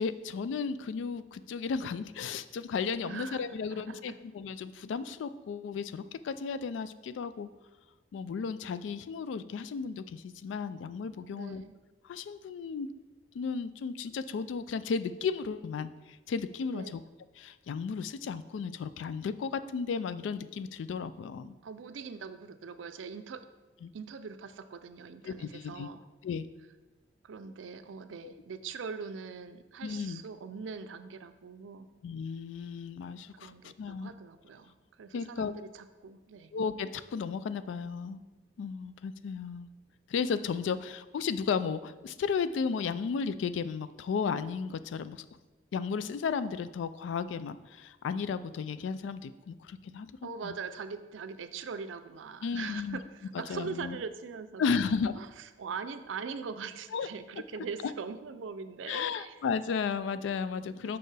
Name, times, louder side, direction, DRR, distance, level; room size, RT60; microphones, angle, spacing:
voice 1, 0.0-7.5 8.1-11.6 12.1-12.9 13.3-17.0 17.4-21.6 23.8-23.9 25.2-25.9 26.2-26.4 28.2-28.3 29.8-30.2 32.0-34.1 35.1-35.5 36.5-38.2 38.6-39.7 40.1-45.2 45.7-50.1 50.4-50.6 52.4-53.0 53.5-54.0 54.6-55.1 56.9-57.1 57.8-57.9 58.9-61.0, left 5 dB, 75° left, 14 dB, 0.3 m, -34 dB
voice 2, 3.0-4.2 11.3-11.8 16.7-17.0 21.6-23.5 23.9-26.0 27.2-31.9 33.3-36.5 40.7-40.8 50.2-59.4 60.8-61.0, right 5 dB, 90° right, 10 dB, 0.4 m, -42 dB
6.5 x 5.4 x 3.3 m, 1.2 s
head